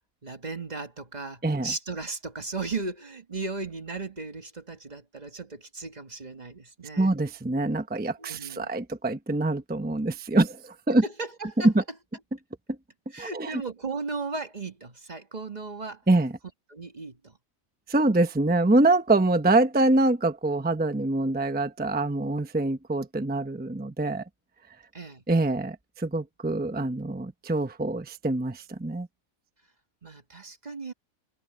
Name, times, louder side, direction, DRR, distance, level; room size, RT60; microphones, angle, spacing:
voice 1, 0.2-7.1 8.2-8.7 11.0-11.7 13.1-16.0 16.7-17.4 24.9-25.2 30.0-30.9, right 3 dB, 30° right, 1.5 m, -36 dB
voice 2, 1.4-1.7 7.0-11.0 11.6-11.7 13.2-13.6 16.1-16.3 17.9-24.2 25.3-29.1, right 2 dB, 10° right, 0.7 m, -25 dB
omnidirectional pair, 1.5 m